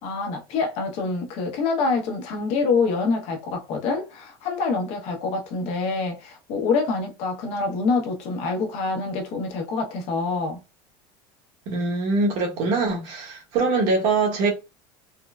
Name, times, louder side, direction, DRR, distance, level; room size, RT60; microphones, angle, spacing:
voice 1, 0.0-10.6, left 4 dB, 55° left, 1.0 m, -26 dB
voice 2, 11.7-14.5, right 3 dB, 65° right, 1.1 m, -23 dB
3.6 x 2.1 x 2.3 m
supercardioid pair, 145°, 12 cm